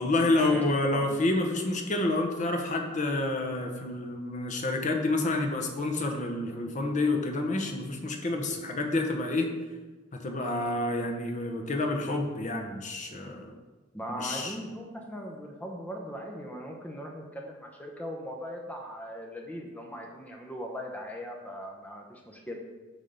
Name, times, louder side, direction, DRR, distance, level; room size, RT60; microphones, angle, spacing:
voice 1, 0.0-9.5 10.2-13.5 14.1-14.6, left 2 dB, 40° left, 3 dB, 0.9 m, -28 dB
voice 2, 13.9-22.6, equal, 10° left, 0 dB, 0.8 m, -39 dB
8.9 x 3.6 x 6.7 m, 1.3 s
head